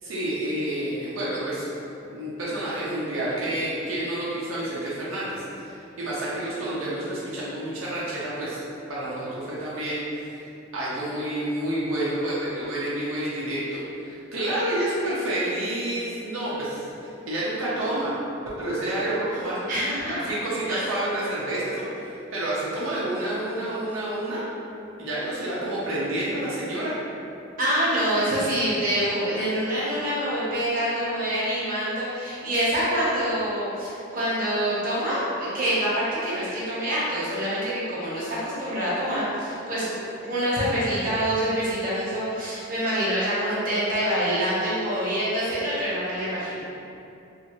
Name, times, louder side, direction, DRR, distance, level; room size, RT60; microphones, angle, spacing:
voice 1, 0.0-1.7 2.1-8.6 8.9-10.4 10.7-18.1 18.6-19.6 20.1-24.4 25.0-27.0, right 1 dB, 90° right, -8 dB, 0.6 m, -29 dB
voice 2, 19.7-20.1 20.7-20.8 27.6-46.6, equal, 45° right, -9 dB, 0.8 m, -26 dB
2.6 x 2.4 x 2.9 m, 2.7 s
head